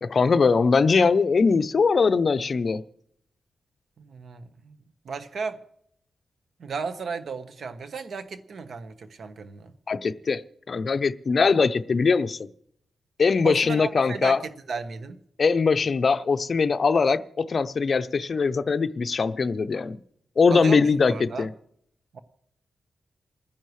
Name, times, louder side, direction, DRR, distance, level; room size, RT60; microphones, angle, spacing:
voice 1, 0.0-2.8 9.9-10.4 10.7-12.4 13.2-14.4 15.4-20.0 20.4-21.5, left 4 dB, 40° left, 0.6 m, -21 dB
voice 2, 4.0-4.8 5.0-5.6 6.6-9.7 13.4-15.2 20.5-21.5 22.1-22.2, right 5 dB, 60° right, 1.1 m, -34 dB
28.5 x 10.0 x 3.2 m
wide cardioid pair, 145°, 0 cm